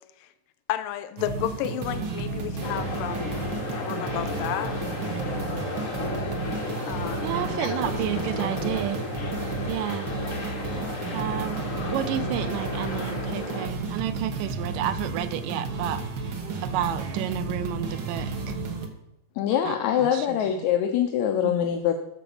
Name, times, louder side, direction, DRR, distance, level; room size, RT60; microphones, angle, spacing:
voice 1, 0.7-3.3 3.7-4.7 6.9-7.8 8.4-8.8 9.2-9.3, left 12 dB, 90° left, 10 dB, 2.3 m, -32 dB
sound 1, 1.2-18.9, right 3 dB, 60° right, 1.2 m, -32 dB
sound 2, 2.6-13.7, left 3 dB, 55° left, 0.8 m, -34 dB
voice 2, 7.2-9.0 9.7-10.1 11.1-16.0 16.6-18.5 19.6-20.4 21.4-21.6, right 11 dB, 80° right, 11 dB, 2.4 m, -31 dB
voice 3, 19.4-22.0, left 9 dB, 75° left, 5 dB, 1.9 m, -24 dB
13.0 x 4.9 x 7.0 m, 0.96 s
omnidirectional pair, 3.9 m